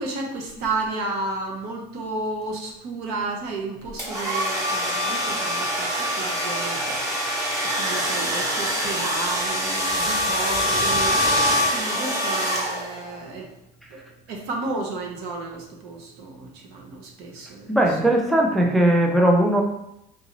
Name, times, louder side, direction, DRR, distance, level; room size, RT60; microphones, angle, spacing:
voice 1, 0.0-13.5 13.9-14.0 14.3-17.7, right 3 dB, 80° right, 1 dB, 0.8 m, -32 dB
sound 1, 4.0-13.1, equal, 20° right, 0.9 m, -24 dB
voice 2, 17.7-19.6, right 1 dB, ahead, 1 dB, 0.3 m, -19 dB
3.8 x 2.7 x 2.9 m, 0.80 s
cardioid pair, 155°, 17 cm